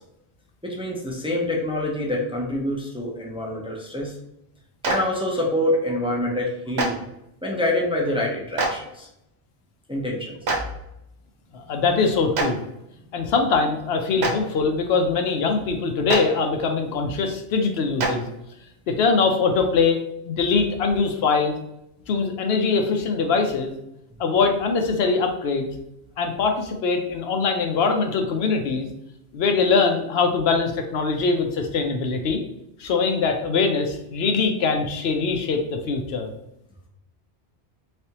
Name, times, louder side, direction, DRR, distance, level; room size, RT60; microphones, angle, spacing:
voice 1, 0.6-4.2 4.8-7.0 7.4-9.1 9.9-10.6, left 1 dB, 5° right, -2 dB, 0.5 m, -26 dB
Clapping, 4.8-4.9 6.7-6.9 8.6-8.7 10.4-10.6 12.3-12.4 14.2-14.3 16.1-16.2 18.0-18.1, right 3 dB, 75° right, 1.0 m, -22 dB
voice 2, 11.5-12.6 13.1-18.2 18.9-20.0 20.2-21.5 22.1-23.7 24.2-25.7 26.2-28.9 29.3-32.4 32.8-36.3, left 4 dB, 70° left, 4 dB, 0.9 m, -22 dB
3.4 x 3.4 x 2.8 m, 0.83 s
omnidirectional pair, 1.1 m